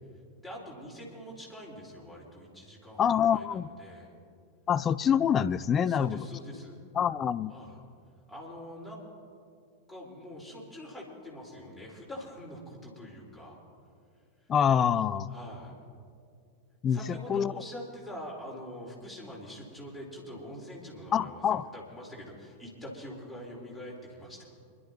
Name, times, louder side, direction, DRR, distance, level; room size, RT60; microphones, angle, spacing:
voice 1, 0.4-4.1 5.9-6.8 7.5-7.8 8.3-9.0 9.9-13.6 15.3-15.8 16.9-24.5, equal, ahead, -4 dB, 4.0 m, -44 dB
voice 2, 3.0-3.7 4.7-6.2 7.0-7.5 14.5-15.3 16.8-17.5 21.1-21.7, left 8 dB, 25° left, 16 dB, 0.4 m, -26 dB
26.5 x 12.0 x 2.9 m, 2.3 s
figure-of-eight pair, 90°, 0 cm